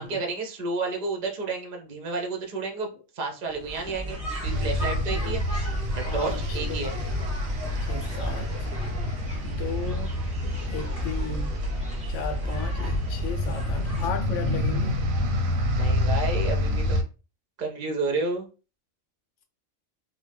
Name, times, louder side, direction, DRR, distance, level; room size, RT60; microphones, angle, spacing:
voice 1, 0.0-2.9 3.2-5.4 5.9-7.0 15.8-17.0 17.6-18.5, right 3 dB, 50° right, 0.6 m, -31 dB
sound 1, 3.5-14.1, left 1 dB, 5° right, 0.9 m, -34 dB
sound 2, 4.4-17.0, left 1 dB, 90° right, 1.0 m, -28 dB
voice 2, 6.0-6.8 7.8-8.7 9.4-11.5 12.1-15.0, left 6 dB, 70° left, 0.9 m, -36 dB
2.6 x 2.1 x 3.3 m
omnidirectional pair, 1.4 m